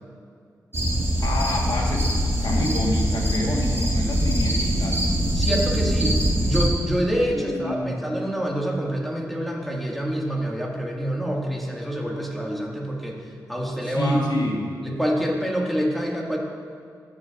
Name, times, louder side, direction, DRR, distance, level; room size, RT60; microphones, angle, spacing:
sound 1, 0.7-6.7, equal, 30° right, 1.5 m, -23 dB
voice 1, 1.2-2.1 2.4-5.0 7.3-8.0 13.8-14.6, left 1 dB, 70° left, 0 dB, 1.4 m, -27 dB
voice 2, 5.3-14.3 14.8-16.4, equal, ahead, -2 dB, 1.9 m, -26 dB
13.5 x 7.4 x 2.5 m, 2.2 s
cardioid pair, 50°, 8 cm